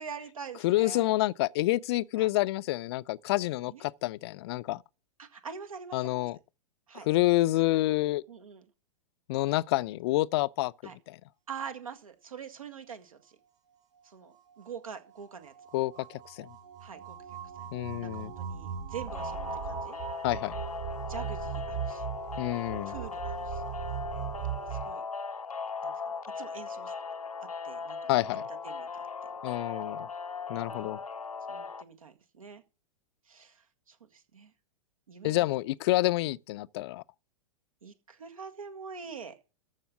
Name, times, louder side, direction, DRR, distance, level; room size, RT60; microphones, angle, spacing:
voice 1, 0.0-1.1 2.2-2.3 3.7-3.8 5.2-6.3 6.9-7.1 8.3-8.6 10.8-11.0 11.5-13.4 14.0-15.5 16.8-17.2 17.6-17.7 18.0-20.0 21.1-22.1 22.9-23.6 24.7-25.0 25.8-26.0 26.4-26.9 27.6-28.1 28.6-28.9 30.5-31.0 31.5-32.6 33.3-34.5 35.1-35.5 37.8-39.3, right 6 dB, 75° right, 1.9 m, -44 dB
voice 2, 0.6-4.8 5.9-6.4 7.0-8.2 9.3-11.2 15.7-16.5 17.7-18.3 20.2-20.6 22.4-23.0 28.1-28.4 29.4-30.1 30.5-31.0 35.2-37.0, left 17 dB, 45° left, 0.5 m, -28 dB
sound 1, 13.7-24.9, right 9 dB, 55° right, 4.3 m, -39 dB
sound 2, 19.1-31.8, left 5 dB, 90° left, 0.7 m, -38 dB
14.0 x 5.7 x 7.2 m
figure-of-eight pair, 100°, 18 cm